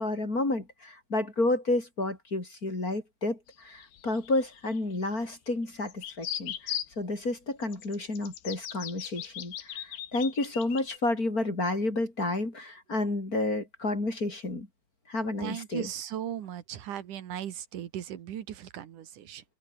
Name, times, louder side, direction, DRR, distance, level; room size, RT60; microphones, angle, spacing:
voice 1, 0.0-14.7 15.1-15.9, left 2 dB, 20° left, 4.9 m, -30 dB
sound 1, 3.5-5.2 5.9-6.9 7.6-11.0, left 11 dB, 80° left, 3.9 m, -39 dB
voice 2, 15.4-19.4, right 10 dB, 60° right, 3.0 m, -37 dB
open air
omnidirectional pair, 4.4 m